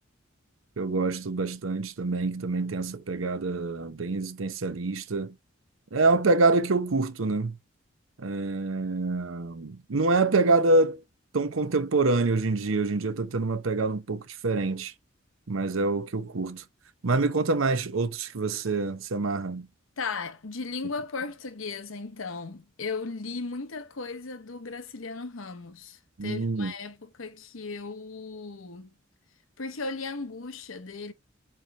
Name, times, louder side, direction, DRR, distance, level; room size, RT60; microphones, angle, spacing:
voice 1, 0.8-5.3 5.9-7.5 8.2-11.0 11.3-14.9 15.5-16.6 17.0-19.7 26.2-26.7, right 3 dB, 80° right, 0.8 m, -26 dB
voice 2, 20.0-28.9 29.6-31.1, left 4 dB, 90° left, 0.9 m, -36 dB
7.8 x 3.3 x 3.9 m
head